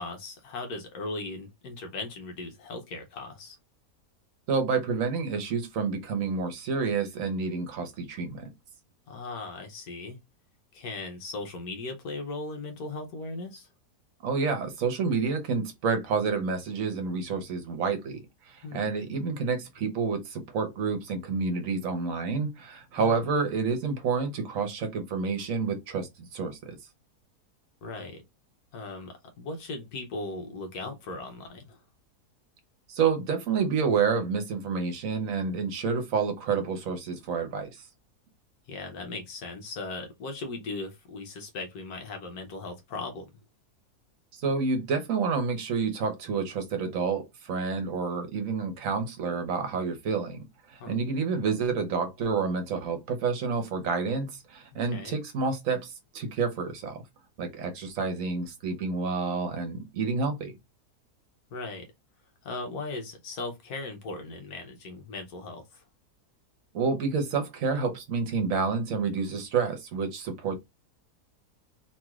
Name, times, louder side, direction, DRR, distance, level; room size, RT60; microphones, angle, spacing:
voice 1, 0.0-3.6 9.1-10.2 10.7-13.7 18.6-18.8 23.0-23.2 27.8-28.2 28.7-31.8 38.7-43.3 50.8-50.9 54.9-55.2 61.5-61.9 62.4-65.8, left 3 dB, 75° left, 1.2 m, -38 dB
voice 2, 4.5-8.5 14.2-26.7 32.9-37.8 44.3-57.0 57.4-60.5 66.7-70.5, right 5 dB, 60° right, 1.1 m, -29 dB
3.1 x 3.0 x 2.3 m
omnidirectional pair, 1.7 m